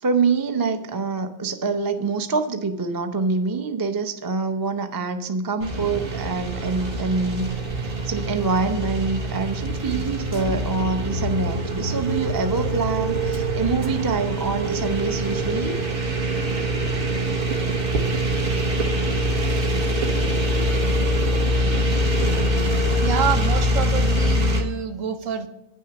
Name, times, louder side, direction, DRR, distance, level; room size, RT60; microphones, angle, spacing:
voice 1, 0.0-7.5 7.8-15.7, right 4 dB, 25° right, 7 dB, 0.5 m, -25 dB
sound 1, 5.6-24.6, equal, 45° right, 1.3 m, -24 dB
voice 2, 23.0-25.5, right 8 dB, 80° right, 8 dB, 1.2 m, -27 dB
9.8 x 6.4 x 6.9 m, 0.89 s
omnidirectional pair, 1.3 m